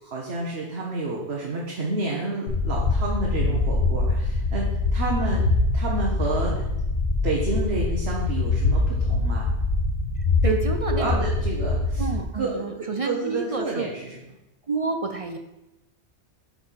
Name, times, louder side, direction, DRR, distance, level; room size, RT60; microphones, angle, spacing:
voice 1, 0.0-4.7 4.9-5.4 5.7-6.7 7.2-9.5 10.4-10.5 10.9-12.1 12.3-14.2, right 3 dB, 65° right, -2 dB, 1.4 m, -29 dB
sound 1, 2.5-12.2, left 3 dB, 70° left, 1.2 m, -24 dB
voice 2, 10.2-11.3 12.0-13.9 14.7-15.4, right 4 dB, 45° right, 5 dB, 0.5 m, -29 dB
8.3 x 4.5 x 5.7 m, 0.95 s
omnidirectional pair, 1.2 m